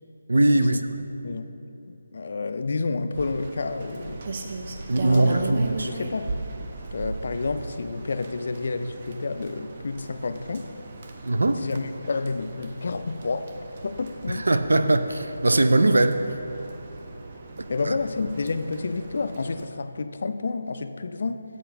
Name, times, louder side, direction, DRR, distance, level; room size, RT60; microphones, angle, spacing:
voice 1, 0.3-0.8 4.9-5.9 11.2-11.6 14.3-16.2 17.8-17.9, right 2 dB, 90° right, 9 dB, 0.5 m, -21 dB
voice 2, 1.9-4.2 5.1-5.5 5.8-6.4 6.9-10.7 11.6-13.6 13.8-14.5 17.7-21.4, left 3 dB, 50° left, 10 dB, 0.4 m, -30 dB
Rain, 3.1-19.7, right 3 dB, 35° right, 0.5 m, -38 dB
8.1 x 4.2 x 5.8 m, 2.8 s
figure-of-eight pair, 170°, 0 cm